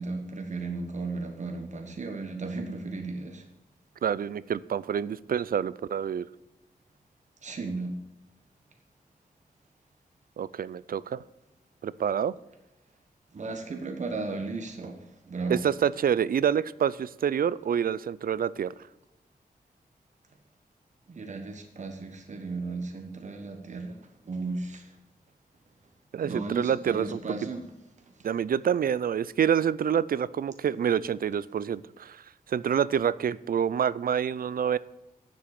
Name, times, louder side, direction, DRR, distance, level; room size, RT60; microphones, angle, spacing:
voice 1, 0.0-3.4 7.4-8.0 13.3-15.0 15.2-15.7 21.1-24.0 24.2-24.9 26.2-27.6, right 3 dB, 50° right, 4 dB, 1.3 m, -35 dB
voice 2, 4.0-6.3 10.4-11.2 11.8-12.3 15.5-18.7 26.1-27.2 28.2-32.2 32.5-34.8, right 8 dB, 70° right, 19 dB, 0.4 m, -27 dB
10.0 x 7.7 x 6.6 m, 0.99 s
wide cardioid pair, 110°, 16 cm